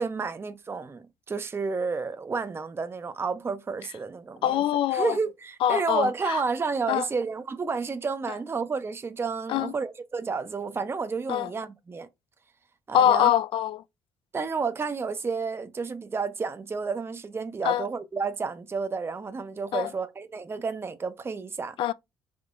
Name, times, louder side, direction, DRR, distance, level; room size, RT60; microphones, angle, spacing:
voice 1, 0.0-4.6 4.9-12.1 12.9-13.3 14.3-21.8, right 4 dB, 25° right, 0.5 m, -31 dB
voice 2, 4.4-5.2 5.6-6.4 6.9-7.1 9.5-9.7 11.3-11.5 12.9-13.8 17.6-17.9 19.7-19.9 21.8-21.9, left 11 dB, 60° left, 0.3 m, -24 dB
3.6 x 3.2 x 2.4 m
supercardioid pair, 65°, 10 cm